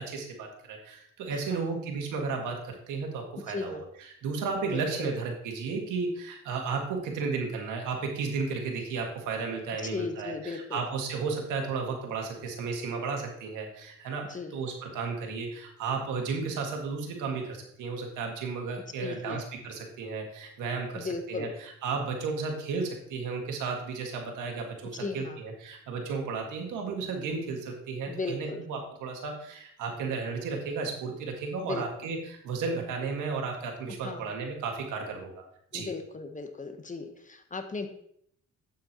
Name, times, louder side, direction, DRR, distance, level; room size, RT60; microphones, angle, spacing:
voice 1, 0.0-35.4 35.7-35.9, right 4 dB, 85° right, 2 dB, 1.9 m, -34 dB
voice 2, 1.3-1.7 3.5-3.8 4.6-5.1 9.8-10.8 14.3-14.5 19.0-19.4 20.9-21.5 25.0-25.4 28.1-28.6 31.6-32.1 34.0-34.3 35.7-37.9, left 3 dB, 25° left, 6 dB, 1.0 m, -36 dB
8.4 x 7.5 x 2.9 m, 0.69 s
cardioid pair, 90°, 30 cm